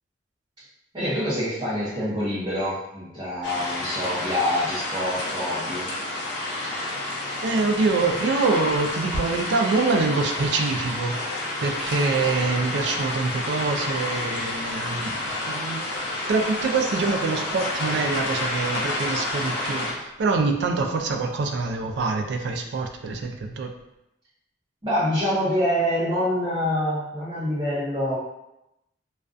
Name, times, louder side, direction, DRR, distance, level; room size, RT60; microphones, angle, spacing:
voice 1, 0.9-5.9 24.8-28.2, equal, 25° right, -12 dB, 0.6 m, -26 dB
sound 1, 3.4-19.9, left 2 dB, 70° left, 0.6 m, -29 dB
voice 2, 7.4-11.2 11.6-15.9 16.3-23.7, right 3 dB, 65° right, 4 dB, 0.3 m, -25 dB
2.3 x 2.1 x 2.4 m, 0.88 s
head